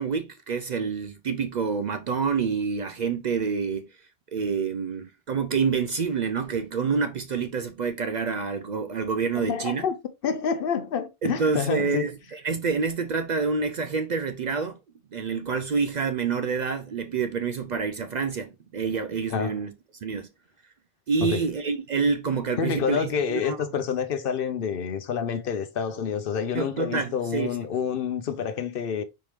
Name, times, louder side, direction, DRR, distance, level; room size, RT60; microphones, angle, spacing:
voice 1, 0.0-3.9 4.3-9.8 11.2-14.8 15.1-19.7 20.0-20.3 21.1-23.6 26.5-27.6, right 5 dB, 55° right, 0.5 m, -27 dB
voice 2, 9.4-10.0 10.2-12.1 19.3-19.6 21.2-21.5 22.6-29.0, left 7 dB, 65° left, 0.8 m, -28 dB
4.4 x 3.5 x 3.1 m
omnidirectional pair, 1.1 m